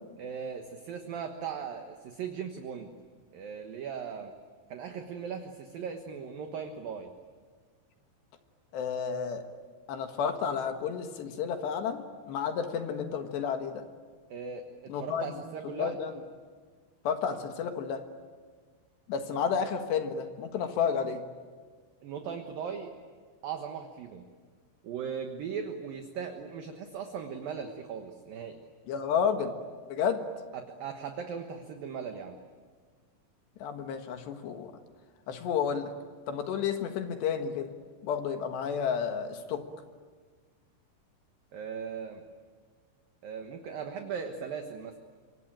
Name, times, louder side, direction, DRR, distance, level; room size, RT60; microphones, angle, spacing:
voice 1, 0.2-2.9 3.3-4.3 4.7-7.1 14.3-16.0 22.0-22.9 23.4-24.2 24.8-28.6 30.5-32.4 41.5-42.2 43.2-45.0, right 6 dB, 60° right, 5 dB, 2.6 m, -38 dB
voice 2, 8.7-9.5 9.9-13.8 14.9-15.4 15.8-16.1 17.1-18.0 19.1-21.2 28.9-29.5 29.9-30.2 33.6-34.7 35.3-35.9 36.3-37.7 38.0-39.6, left 7 dB, 70° left, 6 dB, 3.5 m, -31 dB
26.5 x 25.0 x 9.1 m, 1.5 s
omnidirectional pair, 5.4 m